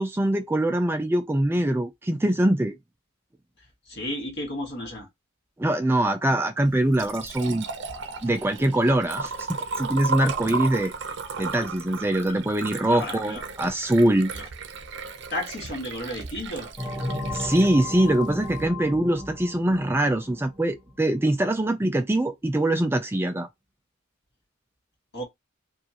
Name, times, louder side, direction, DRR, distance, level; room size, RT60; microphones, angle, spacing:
voice 1, 0.0-2.7 5.6-7.7 8.2-9.5 9.8-10.9 11.4-14.3 17.3-23.5, right 1 dB, 10° right, 0.3 m, -23 dB
voice 2, 3.9-5.1 12.9-13.4 14.3-14.4 15.3-16.7 25.1-25.2, left 1 dB, 50° left, 1.7 m, -33 dB
Liquid, 6.6-18.7, right 4 dB, 55° right, 0.7 m, -35 dB
sound 1, 16.8-21.2, left 2 dB, 10° left, 1.5 m, -34 dB
4.9 x 2.5 x 2.9 m
head